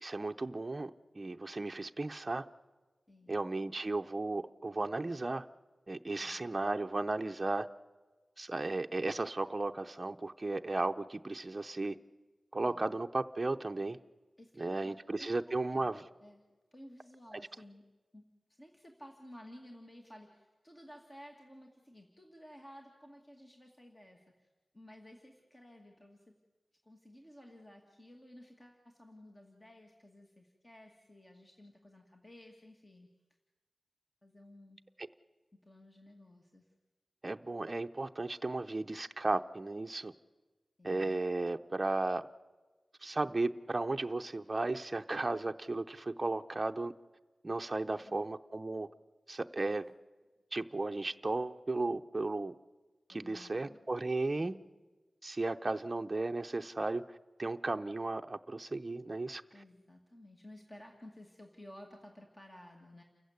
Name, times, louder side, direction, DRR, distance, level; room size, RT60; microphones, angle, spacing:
voice 1, 0.0-2.5 3.3-5.4 5.9-7.7 8.4-12.0 12.5-14.0 14.6-16.0 37.2-40.1 40.8-42.2 43.0-46.9 47.4-48.9 49.3-49.8 50.5-52.5 53.1-54.6 55.2-59.4, right 2 dB, 30° right, 6 dB, 0.6 m, -35 dB
voice 2, 14.4-15.4 15.7-16.4 16.7-17.8 18.1-18.2 18.6-24.5 24.7-26.3 26.8-33.1 34.2-34.8 35.6-36.7 40.8-41.2 47.9-48.2 49.7-49.9 53.1-53.8 54.4-54.6 59.5-63.0, left 1 dB, 25° left, 1 dB, 2.2 m, -55 dB
29.0 x 15.0 x 8.1 m, 1.3 s
wide cardioid pair, 95°, 0 cm